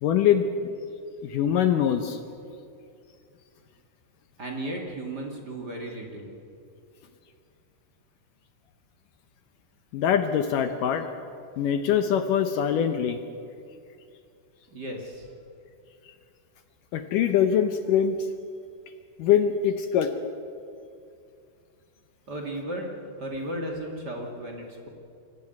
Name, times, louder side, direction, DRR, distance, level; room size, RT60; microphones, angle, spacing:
voice 1, 0.0-0.7 1.2-2.2 9.9-11.0 11.6-13.2 16.9-18.3 19.2-20.1, left 8 dB, 75° left, 8 dB, 2.0 m, -23 dB
voice 2, 4.4-6.3 14.7-15.3 22.3-22.9 23.2-24.9, right 1 dB, 30° right, 1 dB, 2.2 m, -35 dB
25.0 x 15.0 x 9.3 m, 2.5 s
omnidirectional pair, 4.9 m